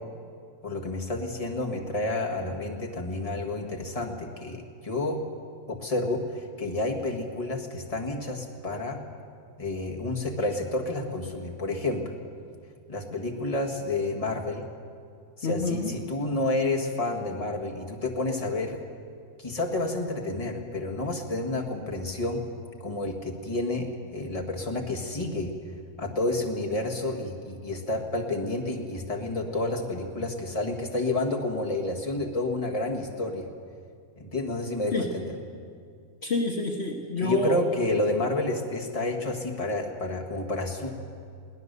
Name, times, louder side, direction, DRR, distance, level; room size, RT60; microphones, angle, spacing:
voice 1, 0.6-5.2 5.7-9.0 9.6-12.2 12.9-14.7 15.4-18.8 19.4-22.4 22.8-25.5 26.0-33.5 34.2-35.3 37.2-40.9, left 2 dB, 25° left, 0 dB, 1.8 m, -30 dB
voice 2, 15.4-15.9 34.9-35.1 36.2-37.6, left 2 dB, 50° left, 1 dB, 1.5 m, -28 dB
22.0 x 18.0 x 6.8 m, 2.3 s
omnidirectional pair, 1.4 m